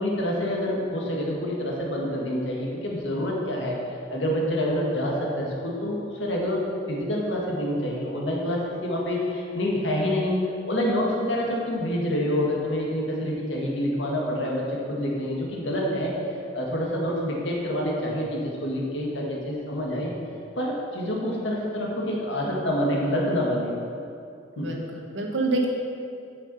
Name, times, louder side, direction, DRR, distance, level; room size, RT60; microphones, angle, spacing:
voice 1, 0.0-3.8 4.1-6.6 6.9-16.1 16.5-20.1 20.6-23.7 24.6-24.7, equal, 85° left, -2 dB, 1.8 m, -27 dB
voice 2, 24.6-25.7, right 2 dB, 85° right, 1 dB, 1.3 m, -27 dB
9.1 x 6.0 x 5.5 m, 2.5 s
head